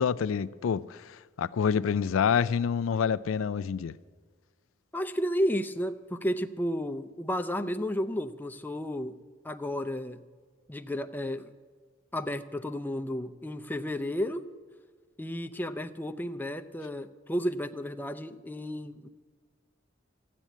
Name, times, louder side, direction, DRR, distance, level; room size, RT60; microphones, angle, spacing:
voice 1, 0.0-4.0, left 7 dB, 90° left, 0.4 m, -27 dB
voice 2, 4.9-9.1 9.4-10.2 10.7-11.5 12.1-14.4 15.2-19.1, equal, 10° left, 0.5 m, -32 dB
14.0 x 8.4 x 9.1 m
head